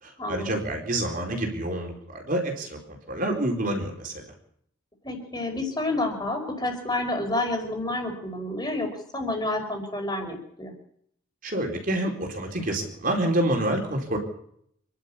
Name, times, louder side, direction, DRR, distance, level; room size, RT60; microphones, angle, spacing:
voice 1, 0.0-4.2 11.4-14.2, right 1 dB, 40° right, 2 dB, 4.3 m, -28 dB
voice 2, 5.0-10.7, left 2 dB, 20° left, 4 dB, 5.2 m, -29 dB
27.5 x 12.0 x 8.5 m, 0.70 s
head